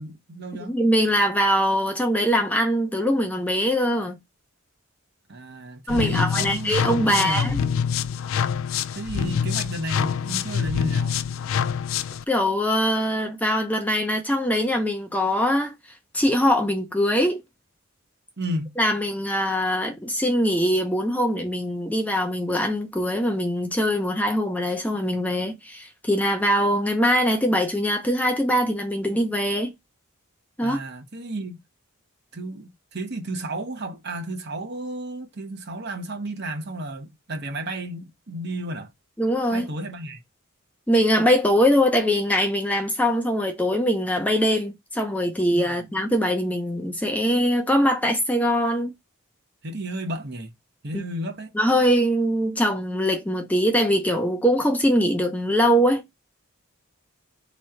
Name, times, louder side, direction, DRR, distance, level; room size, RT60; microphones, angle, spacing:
voice 1, 0.0-0.7 5.3-7.8 8.9-11.2 18.4-18.7 30.6-31.6 32.3-38.9 39.5-40.2 45.6-45.9 49.6-50.5 50.8-51.5, right 1 dB, 50° right, 1.0 m, -32 dB
voice 2, 0.7-4.2 5.9-7.6 12.3-15.7 16.1-17.4 18.8-29.7 30.6-30.8 39.2-39.7 40.9-48.9 50.9-51.0 51.5-56.0, equal, 5° left, 0.6 m, -22 dB
sound 1, 5.9-12.2, left 7 dB, 65° left, 0.3 m, -26 dB
3.7 x 3.1 x 4.4 m
head